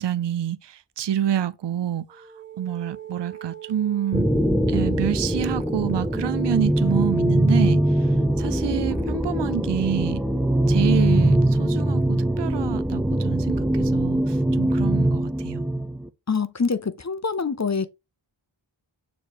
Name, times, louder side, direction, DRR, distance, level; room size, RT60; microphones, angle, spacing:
voice 1, 0.0-2.3 2.6-4.3 4.7-10.2 10.7-15.6, right 10 dB, 60° right, 0.6 m, -28 dB
sound 1, 2.1-6.4, right 11 dB, 25° right, 1.7 m, -41 dB
sound 2, 4.1-16.1, right 1 dB, ahead, 0.6 m, -22 dB
voice 2, 16.3-17.9, left 5 dB, 35° left, 0.7 m, -25 dB
6.9 x 3.2 x 4.4 m
wide cardioid pair, 65°, 48 cm